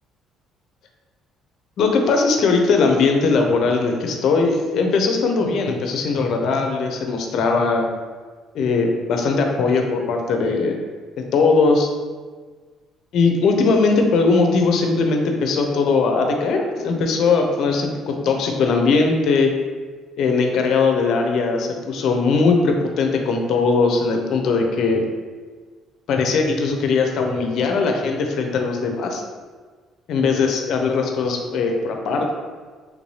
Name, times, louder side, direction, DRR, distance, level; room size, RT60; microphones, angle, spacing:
voice 1, 1.8-7.9 8.5-10.8 11.3-11.9 13.1-19.5 20.2-25.0 26.1-29.2 30.1-32.4, left 4 dB, 65° left, 3 dB, 0.5 m, -19 dB
3.4 x 2.6 x 3.1 m, 1.5 s
cardioid pair, 105°, 0 cm